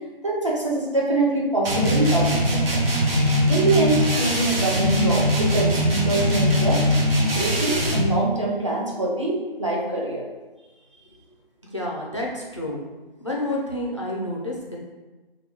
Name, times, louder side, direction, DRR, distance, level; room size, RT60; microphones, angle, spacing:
voice 1, 0.2-2.8 3.5-6.9 7.4-10.2, right 2 dB, 35° right, -4 dB, 0.5 m, -24 dB
sound 1, 1.6-8.1, equal, 80° right, 0.8 m, -21 dB
voice 2, 11.7-12.8 13.2-14.8, left 1 dB, 30° left, -2 dB, 0.4 m, -29 dB
2.8 x 2.3 x 3.4 m, 1.2 s
figure-of-eight pair, 170°, 29 cm